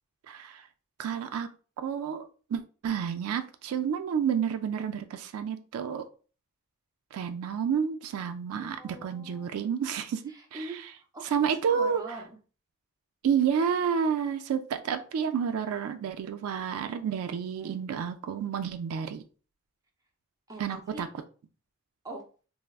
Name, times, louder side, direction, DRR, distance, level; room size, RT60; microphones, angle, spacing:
voice 1, 0.3-0.6 1.0-1.5 1.8-2.2 2.5-6.0 7.1-10.6 11.3-12.0 13.2-19.2 20.6-21.1, right 7 dB, 80° right, 9 dB, 0.3 m, -30 dB
voice 2, 8.5-9.5 10.3-12.4 17.6-17.9 20.5-21.0 22.0-22.2, right 2 dB, 15° right, 1 dB, 0.4 m, -44 dB
3.3 x 2.0 x 2.3 m, 0.37 s
head